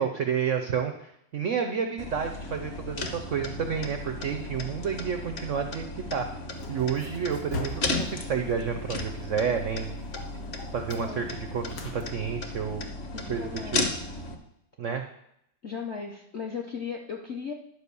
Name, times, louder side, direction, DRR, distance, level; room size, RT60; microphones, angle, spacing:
voice 1, 0.0-6.3 6.7-9.9 10.7-12.9 13.3-13.8 14.8-15.0, right 7 dB, 80° right, 5 dB, 0.7 m, -30 dB
sound 1, 2.0-14.3, left 2 dB, 40° left, 1.0 m, -35 dB
sound 2, 6.5-12.0, left 3 dB, 80° left, 2.3 m, -42 dB
voice 2, 10.9-11.3 13.1-13.9 15.6-17.5, left 6 dB, 65° left, 1 dB, 0.6 m, -36 dB
11.0 x 4.9 x 6.8 m, 0.77 s
omnidirectional pair, 2.2 m